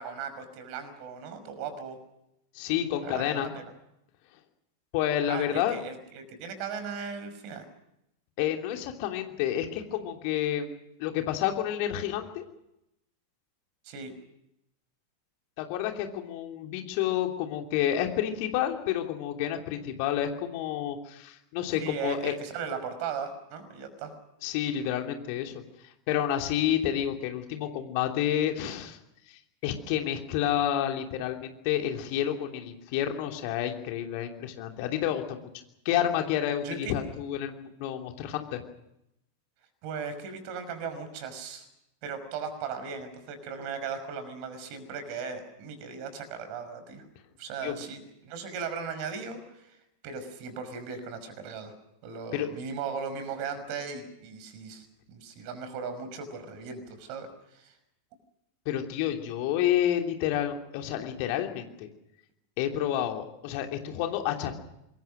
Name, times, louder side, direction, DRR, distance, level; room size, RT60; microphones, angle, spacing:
voice 1, 0.0-2.0 3.0-3.6 5.3-7.7 13.8-14.1 21.8-24.1 36.6-36.9 39.8-41.7 42.0-47.1 47.4-49.8 50.0-51.7 52.0-57.7, right 6 dB, 45° right, 10 dB, 5.5 m, -37 dB
voice 2, 2.5-3.6 4.9-5.7 8.4-12.4 15.6-22.3 24.4-29.0 29.3-35.5 35.8-38.6 47.6-47.8 52.3-52.5 58.6-61.9 62.6-64.6, left 11 dB, 45° left, 4 dB, 3.0 m, -29 dB
26.0 x 22.0 x 6.3 m, 0.82 s
figure-of-eight pair, 90°, 0 cm